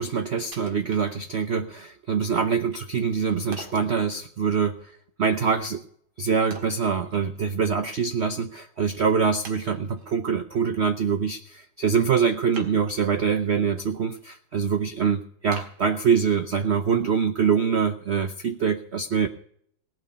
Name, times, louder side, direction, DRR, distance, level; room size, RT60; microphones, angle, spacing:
voice 1, 0.0-4.9 5.2-5.8 6.2-19.3, right 6 dB, 65° right, 8 dB, 0.6 m, -24 dB
Wood, 0.5-1.6 2.1-2.2 3.5-3.9 6.5-7.6 8.0-8.1 8.7-8.8 9.4-10.1 12.5-13.3 13.7-14.2 14.6-14.7 15.5-16.5 17.0-17.1, right 4 dB, 85° right, 2.7 m, -45 dB
18.0 x 6.1 x 9.7 m, 0.64 s
omnidirectional pair, 2.2 m